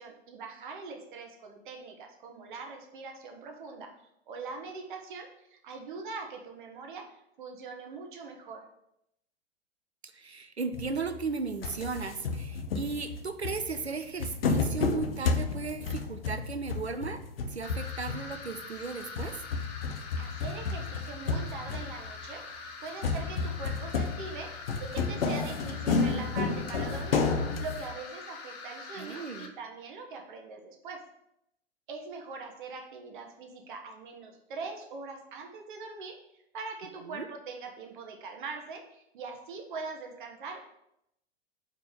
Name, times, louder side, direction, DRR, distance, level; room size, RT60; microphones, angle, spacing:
voice 1, 0.0-3.9 4.3-8.6 20.2-27.3 27.6-31.0 31.9-36.2 36.5-40.6, right 4 dB, 50° right, 3 dB, 1.1 m, -42 dB
voice 2, 10.0-17.2 17.5-19.4 28.9-29.5 37.0-37.3, right 4 dB, 90° right, 9 dB, 0.6 m, -36 dB
sound 1, 10.7-11.3 11.6-18.6 19.0-22.3 23.0-27.9, left 4 dB, 65° left, 0.7 m, -32 dB
sound 2, 17.6-29.5, left 4 dB, 40° left, 0.9 m, -44 dB
4.9 x 3.5 x 5.5 m, 0.80 s
figure-of-eight pair, 95°, 32 cm